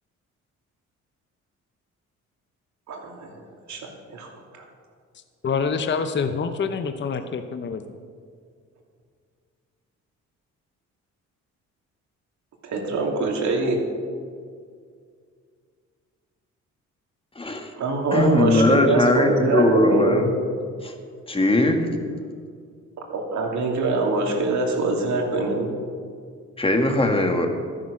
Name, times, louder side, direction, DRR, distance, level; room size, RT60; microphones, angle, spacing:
voice 1, 2.9-3.4 3.7-3.8 4.1-4.3 4.5-4.6 12.6-13.8 17.8-20.2 23.1-25.8, right 3 dB, 70° right, 1 dB, 2.8 m, -23 dB
voice 2, 5.4-7.8, left 5 dB, 40° left, 8 dB, 0.8 m, -26 dB
voice 3, 17.3-17.7 18.1-20.2 20.8-20.9 21.3-21.9 26.6-27.5, left 1 dB, 20° left, 4 dB, 1.8 m, -20 dB
12.5 x 10.5 x 6.5 m, 2.1 s
cardioid pair, 90°, 30 cm